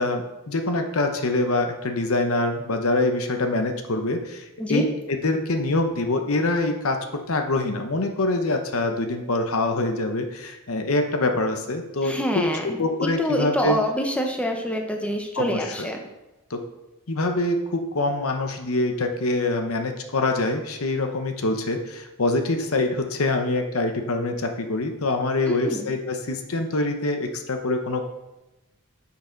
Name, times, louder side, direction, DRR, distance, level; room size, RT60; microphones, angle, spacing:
voice 1, 0.0-13.8 15.4-15.9 16.5-16.6 17.1-28.1, left 2 dB, 70° left, 5 dB, 0.9 m, -25 dB
voice 2, 12.0-12.8 13.2-16.0 25.5-25.9, equal, 5° left, 2 dB, 0.9 m, -26 dB
10.5 x 5.8 x 3.9 m, 0.99 s
head